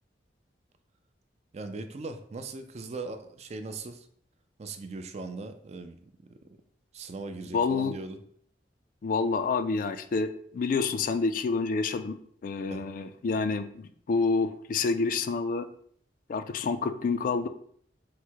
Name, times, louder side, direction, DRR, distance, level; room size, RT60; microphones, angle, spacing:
voice 1, 1.5-4.1 4.6-6.3 6.9-8.2 12.7-12.8, right 3 dB, 35° right, 8 dB, 0.4 m, -39 dB
voice 2, 7.5-7.9 9.0-15.6 16.3-17.5, left 4 dB, 50° left, 10 dB, 0.3 m, -28 dB
4.7 x 2.1 x 4.5 m, 0.62 s
head